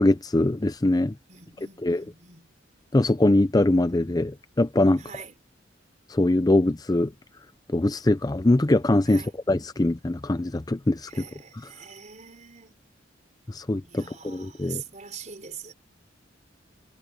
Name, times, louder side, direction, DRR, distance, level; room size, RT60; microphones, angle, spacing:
voice 1, 0.0-1.1 1.8-2.0 2.9-5.0 6.1-7.1 7.7-11.3 13.5-14.8, left 1 dB, 20° left, 0.5 m, -22 dB
voice 2, 1.3-2.4 5.0-5.3 9.1-9.3 11.1-12.8 13.8-15.7, right 7 dB, 40° right, 4.9 m, -43 dB
head